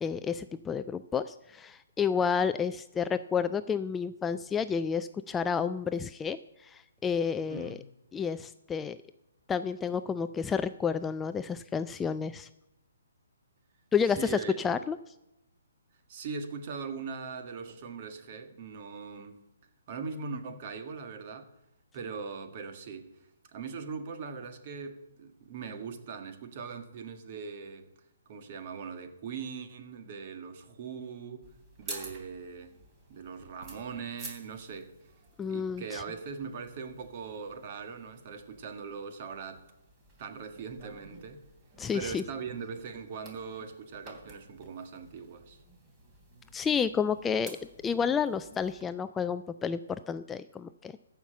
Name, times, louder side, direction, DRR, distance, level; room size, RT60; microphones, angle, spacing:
voice 1, 0.0-7.8 8.1-9.0 9.5-12.5 13.9-15.0 35.4-36.0 41.8-42.2 46.5-47.6 47.8-50.9, left 6 dB, 10° left, 0.3 m, -30 dB
voice 2, 7.5-7.8 14.2-14.8 16.1-19.4 19.9-21.5 21.9-23.2 23.5-27.9 28.3-31.5 31.8-32.8 33.1-35.1 35.5-39.6 40.2-41.4 41.9-45.6, right 5 dB, 40° right, 1.6 m, -40 dB
sound 1, 31.4-48.8, right 2 dB, 20° right, 2.9 m, -51 dB
14.0 x 5.8 x 8.8 m
figure-of-eight pair, 135°, 0 cm